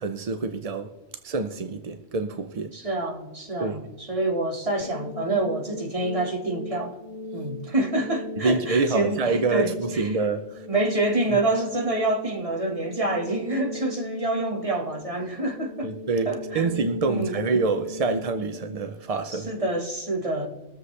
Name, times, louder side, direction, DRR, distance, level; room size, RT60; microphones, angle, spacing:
voice 1, 0.0-0.9 1.2-2.7 3.6-3.8 8.4-10.7 15.8-16.3 16.5-19.5, right 3 dB, 50° right, 0.4 m, -26 dB
voice 2, 2.7-7.0 7.3-10.1 10.7-15.9 16.2-16.7 17.1-17.3 19.3-20.5, right 2 dB, 25° right, 1.5 m, -27 dB
sound 1, 4.8-19.8, left 1 dB, 45° left, 0.5 m, -38 dB
22.0 x 7.5 x 3.3 m
omnidirectional pair, 1.4 m